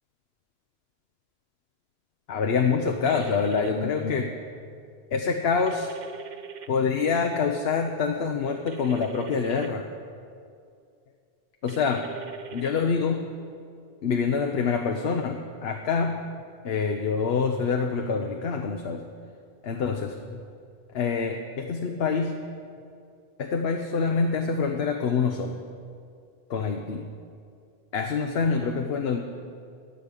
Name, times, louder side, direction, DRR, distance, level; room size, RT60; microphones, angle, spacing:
voice 1, 2.3-4.3 5.1-5.9 6.7-9.8 11.6-12.0 12.5-13.3 14.0-16.2 16.6-19.0 19.6-20.4 20.9-22.4 23.4-25.6 26.5-27.1 27.9-29.2, left 5 dB, 80° left, 4 dB, 1.0 m, -26 dB
sound 1, 3.0-3.7 5.7-6.7 8.7-9.7 11.7-12.7, right 8 dB, 50° right, 0.7 m, -42 dB
16.0 x 5.3 x 9.7 m, 2.3 s
omnidirectional pair, 1.0 m